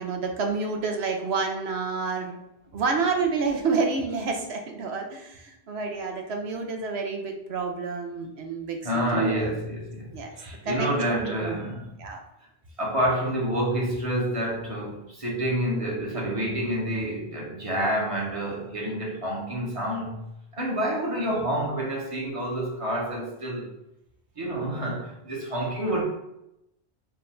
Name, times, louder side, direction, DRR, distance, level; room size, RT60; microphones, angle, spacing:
voice 1, 0.0-2.4 2.7-8.8 9.1-9.6 10.1-10.4 10.6-11.5 12.0-12.2, right 4 dB, 85° right, 3 dB, 1.0 m, -29 dB
voice 2, 8.8-11.9 12.8-20.3 20.5-23.7 24.4-26.0, right 1 dB, 35° right, -3 dB, 1.1 m, -28 dB
3.8 x 2.6 x 4.3 m, 0.85 s
omnidirectional pair, 1.1 m